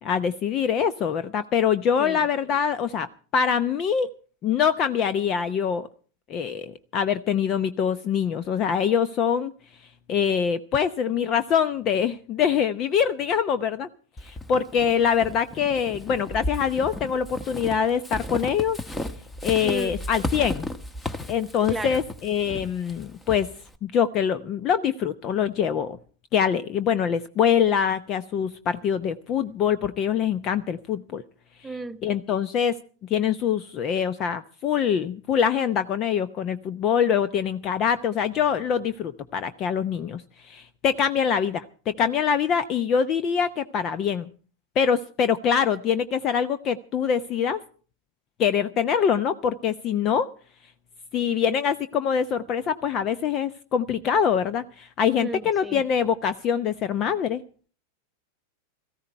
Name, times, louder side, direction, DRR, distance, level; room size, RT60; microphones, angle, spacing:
voice 1, 0.0-3.1 3.3-4.1 4.4-5.9 6.3-9.5 10.1-13.9 14.2-18.8 19.4-20.7 21.3-23.5 23.8-26.0 26.3-31.2 32.0-32.8 33.1-44.3 44.8-47.6 48.4-50.3 51.1-57.4, left 7 dB, 35° left, 0.8 m, -24 dB
Walk footsteps / Squeak, 14.2-23.8, left 1 dB, 10° left, 1.3 m, -34 dB
voice 2, 19.6-19.9 21.7-22.0 31.6-32.0 55.2-55.8, right 2 dB, 5° right, 1.0 m, -33 dB
18.0 x 14.5 x 4.5 m
figure-of-eight pair, 90°, 0 cm